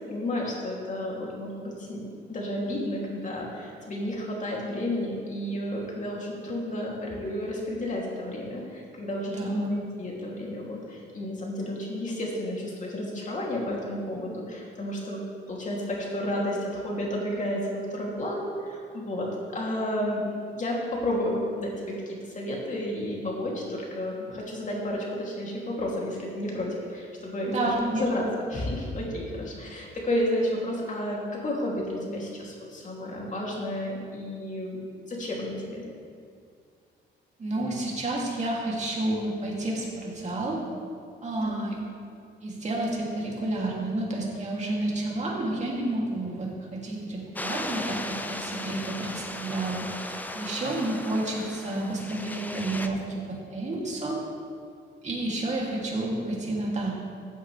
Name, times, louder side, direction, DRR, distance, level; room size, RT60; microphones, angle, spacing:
voice 1, 0.0-15.2 15.5-20.2 20.5-27.7 28.0-28.2 28.5-34.8 35.1-35.8 41.4-41.6, left 1 dB, 40° left, -3 dB, 2.8 m, -31 dB
voice 2, 9.3-9.7 27.5-28.0 37.4-40.6 41.2-41.8 42.4-54.2 55.0-56.9, right 2 dB, 35° right, -3 dB, 2.6 m, -30 dB
sound 1, 47.4-52.9, left 1 dB, 10° left, 0.6 m, -36 dB
14.5 x 8.0 x 3.3 m, 2.2 s
cardioid pair, 90°, 20 cm